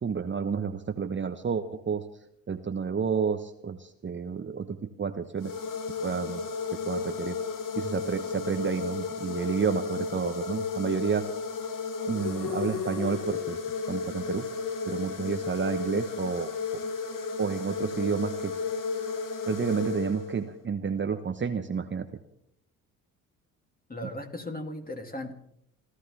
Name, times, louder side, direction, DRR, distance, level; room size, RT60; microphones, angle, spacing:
voice 1, 0.0-2.0 2.5-5.5 6.0-6.4 6.7-7.4 7.8-11.2 12.1-13.6 13.9-14.5 14.9-16.5 17.4-18.5 19.5-22.1 24.0-24.1, right 6 dB, 30° right, 8 dB, 1.0 m, -30 dB
sound 1, 5.4-20.6, left 5 dB, 50° left, 1.8 m, -33 dB
voice 2, 23.9-25.3, left 1 dB, 20° left, 4 dB, 2.8 m, -37 dB
29.0 x 13.0 x 3.5 m, 0.74 s
hypercardioid pair, 60°, 41 cm